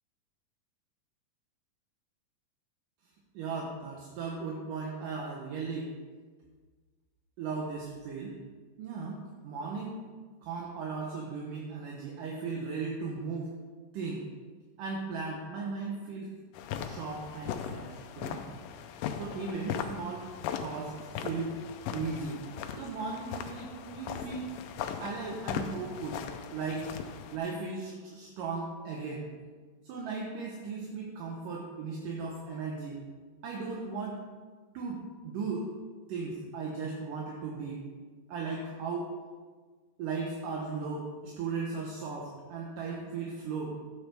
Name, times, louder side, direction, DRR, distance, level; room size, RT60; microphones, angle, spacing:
voice 1, 3.3-5.9 7.4-8.3 8.8-10.0 10.4-13.5 13.9-14.2 14.8-16.3 16.8-18.5 19.2-20.3 20.6-20.9 21.2-21.6 21.9-22.4 22.7-24.5 25.0-26.2 26.5-26.9 27.3-29.3 29.8-33.0 33.4-34.2 34.7-35.7 36.1-37.9 38.3-39.1 40.0-43.8, right 4 dB, 75° right, -2 dB, 2.6 m, -37 dB
sound 1, 16.5-27.4, left 8 dB, 80° left, 2.3 m, -39 dB
12.5 x 9.5 x 3.4 m, 1.5 s
omnidirectional pair, 4.0 m